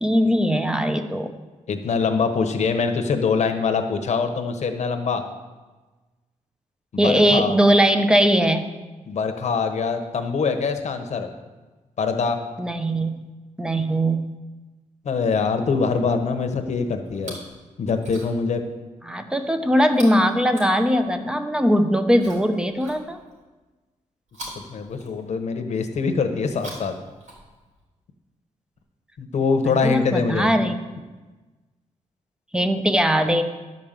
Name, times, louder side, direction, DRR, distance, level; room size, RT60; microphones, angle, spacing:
voice 1, 0.0-1.3 7.0-8.7 12.6-13.2 13.6-14.3 19.0-23.2 29.6-30.8 32.5-33.4, equal, 5° right, 8 dB, 0.7 m, -20 dB
voice 2, 1.7-5.2 6.9-7.5 9.1-11.3 12.0-12.4 15.0-17.4 17.8-18.7 24.7-26.9 29.2-30.5, left 5 dB, 60° left, 6 dB, 1.1 m, -24 dB
Chewing mastication, 17.1-17.6 17.9-18.5 19.9-21.3 22.1-23.4 24.3-25.6 26.4-27.8 28.8-28.9, right 1 dB, 75° right, 3.5 m, -43 dB
10.5 x 5.3 x 7.4 m, 1.2 s
wide cardioid pair, 125°, 13 cm